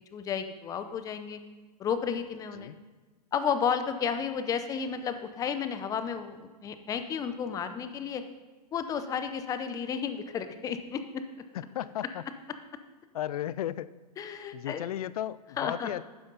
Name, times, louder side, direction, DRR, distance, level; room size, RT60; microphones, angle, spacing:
voice 1, 0.1-1.4 1.8-2.7 3.3-8.2 8.7-11.2 14.2-14.8 15.6-15.9, left 7 dB, 15° left, 9 dB, 0.6 m, -32 dB
voice 2, 11.5-12.2 13.1-13.9 14.5-16.0, left 12 dB, 60° left, 18 dB, 0.4 m, -34 dB
12.0 x 9.4 x 4.0 m, 1.3 s
hypercardioid pair, 140°, 21 cm